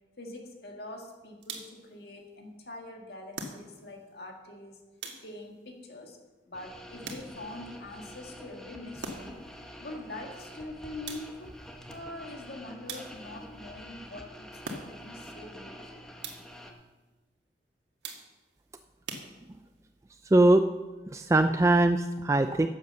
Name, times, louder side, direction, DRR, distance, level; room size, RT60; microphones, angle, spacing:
voice 1, 0.2-4.8 5.2-6.2 6.5-9.4 9.8-11.5 11.9-16.1, left 2 dB, 60° left, 2 dB, 1.9 m, -44 dB
sound 1, 1.4-1.9 3.3-4.0 5.0-5.6 7.0-7.6 9.0-9.5 11.1-11.6 12.9-13.4 14.6-15.2 16.2-16.7 18.0-18.5 19.1-19.8, right 3 dB, 85° right, 1.7 m, -42 dB
sound 2, 6.5-16.7, equal, 5° left, 1.0 m, -47 dB
voice 2, 20.3-20.7 21.1-22.7, right 2 dB, 15° right, 8 dB, 0.3 m, -21 dB
10.5 x 7.9 x 6.9 m, 1.2 s
head